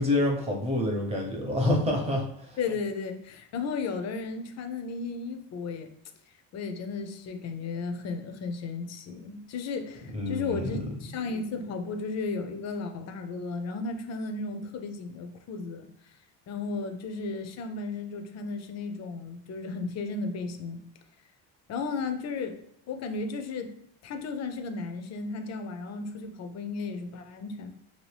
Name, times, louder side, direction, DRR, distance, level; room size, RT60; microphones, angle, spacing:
voice 1, 0.0-2.6 10.1-10.8, left 1 dB, 15° right, -1 dB, 0.6 m, -27 dB
voice 2, 2.6-5.9 6.5-15.9 16.5-20.8 21.7-22.6 22.9-23.7 24.0-27.7, left 4 dB, 40° left, 7 dB, 0.4 m, -34 dB
2.7 x 2.7 x 3.2 m, 0.69 s
cardioid pair, 120°, 43 cm